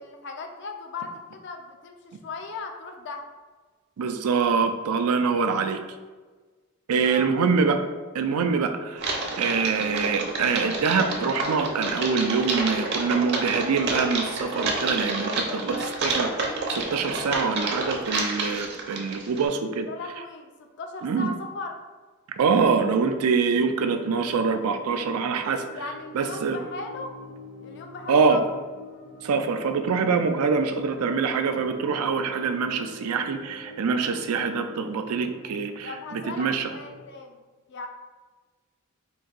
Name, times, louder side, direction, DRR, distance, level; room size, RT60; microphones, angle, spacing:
voice 1, 0.0-3.3 7.0-7.3 15.4-16.0 19.8-21.7 25.7-27.1 27.6-28.4 35.8-37.4 37.7-37.9, left 3 dB, 55° left, 4 dB, 0.5 m, -37 dB
voice 2, 4.0-5.8 6.9-7.8 8.1-15.6 16.0-19.9 21.0-21.3 22.3-25.7 26.1-26.6 28.1-28.4 29.2-36.7, right 5 dB, 85° right, 8 dB, 0.4 m, -25 dB
Typing, 9.0-19.5, right 2 dB, 50° right, 0.7 m, -29 dB
sound 1, 23.6-37.1, left 1 dB, 85° left, 1.1 m, -44 dB
3.9 x 2.6 x 3.9 m, 1.4 s
head